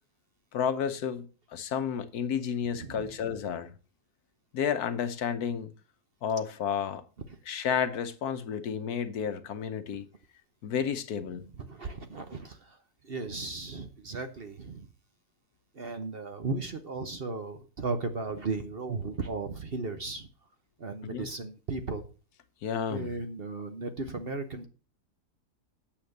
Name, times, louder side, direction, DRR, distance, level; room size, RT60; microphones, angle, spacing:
voice 1, 0.5-3.7 4.5-5.7 6.2-7.0 7.5-10.0 10.6-11.4 21.0-21.3 22.6-23.1, left 7 dB, 70° left, 1.4 m, -31 dB
voice 2, 2.7-3.1 11.4-12.8 13.0-14.9 15.7-20.3 20.8-22.1 22.9-24.7, right 3 dB, 40° right, 1.1 m, -36 dB
8.8 x 6.9 x 6.5 m
omnidirectional pair, 1.7 m